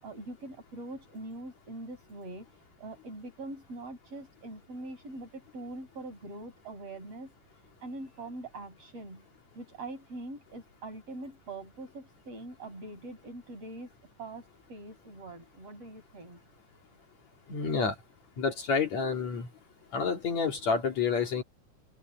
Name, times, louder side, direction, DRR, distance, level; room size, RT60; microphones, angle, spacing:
voice 1, 0.0-2.5 2.8-7.3 7.8-9.2 9.5-13.9 14.2-16.4, right 2 dB, 50° right, 7.7 m, -43 dB
voice 2, 17.5-18.0 18.4-19.5 19.9-21.4, left 5 dB, 60° left, 3.5 m, -29 dB
omnidirectional pair, 3.7 m